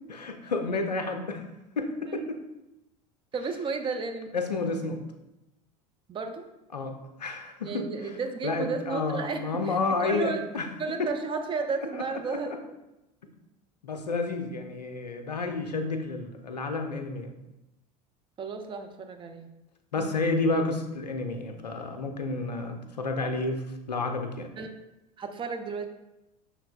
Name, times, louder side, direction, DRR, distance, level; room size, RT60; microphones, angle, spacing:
voice 1, 0.1-1.4 1.8-2.4 4.3-5.0 6.7-6.9 7.2-7.8 8.4-10.7 11.0-11.1 11.9-12.0 12.3-12.6 13.8-17.3 19.9-24.5, left 3 dB, 85° left, 5 dB, 0.5 m, -30 dB
voice 2, 3.3-4.3 6.1-6.4 7.6-10.5 10.8-12.5 18.4-19.5 20.0-20.1 24.6-24.7 25.2-25.9, right 4 dB, 25° right, 6 dB, 0.5 m, -33 dB
5.9 x 3.3 x 2.4 m, 0.94 s
figure-of-eight pair, 75°, 20 cm